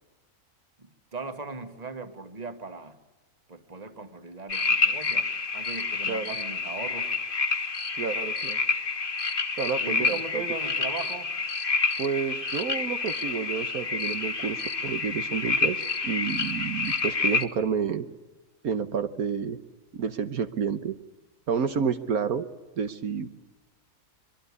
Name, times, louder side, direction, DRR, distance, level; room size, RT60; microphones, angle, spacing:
voice 1, 0.8-3.0 3.5-5.3 5.5-7.1 9.8-11.3, right 4 dB, 25° right, 9 dB, 1.8 m, -38 dB
sound 1, 4.5-17.5, left 4 dB, 35° left, 1.4 m, -28 dB
voice 2, 8.0-8.6 9.6-10.4 12.0-18.0 18.6-19.6 19.9-20.9 21.5-22.5 22.8-23.3, right 6 dB, 70° right, 10 dB, 1.5 m, -30 dB
25.5 x 22.0 x 9.7 m, 1.1 s
omnidirectional pair, 1.6 m